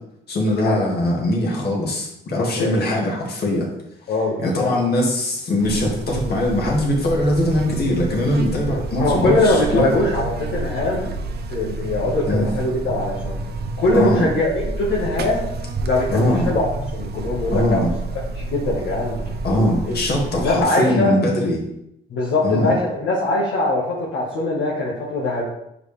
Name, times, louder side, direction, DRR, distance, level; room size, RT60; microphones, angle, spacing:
voice 1, 0.3-3.7 4.4-9.9 12.3-12.5 13.9-14.2 16.1-16.5 17.5-17.9 19.4-21.6 22.4-22.7, left 1 dB, 55° left, -2 dB, 2.0 m, -21 dB
voice 2, 2.6-3.1 4.1-4.8 9.0-11.1 11.5-13.4 13.8-15.5 15.8-16.7 16.9-17.9 18.3-19.1 19.4-19.9 20.3-21.1 22.1-25.4, left 2 dB, 75° left, -4 dB, 1.5 m, -22 dB
Buzz, 5.6-20.6, right 2 dB, 55° right, 0.7 m, -29 dB
6.9 x 4.9 x 3.3 m, 0.81 s
cardioid pair, 90°, 20 cm